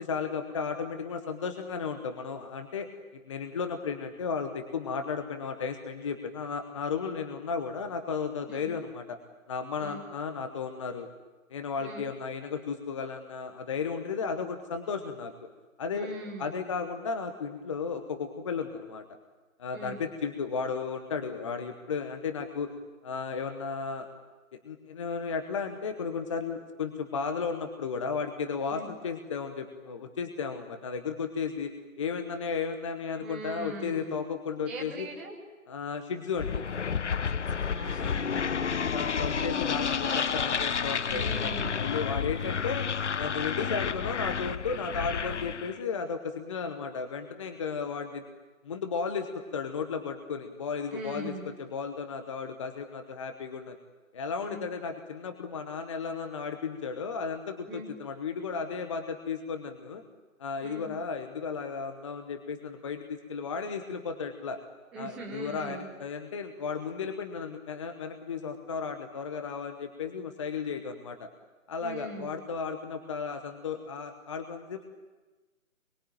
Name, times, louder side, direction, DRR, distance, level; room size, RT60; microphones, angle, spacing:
voice 1, 0.0-9.2 9.5-11.1 11.5-15.3 15.8-16.1 16.4-19.0 19.6-22.7 23.0-24.1 24.6-35.1 35.7-36.6 38.0-38.3 38.9-42.9 43.1-48.2 48.6-53.7 54.1-60.0 60.4-64.6 65.0-71.3 71.7-74.8, left 5 dB, 20° left, 6 dB, 1.0 m, -34 dB
voice 2, 15.9-16.6 19.7-20.0 28.7-28.9 33.2-34.2 34.7-35.4 37.3-39.0 39.3-39.9 41.1-42.0 50.9-51.5 54.4-54.6 57.7-57.9 60.6-60.9 64.9-65.9 71.8-72.3, right 2 dB, 5° right, -2 dB, 0.8 m, -42 dB
sound 1, 36.4-45.8, left 6 dB, 55° left, 0.8 m, -30 dB
25.0 x 23.0 x 9.0 m, 1.2 s
figure-of-eight pair, 150°, 41 cm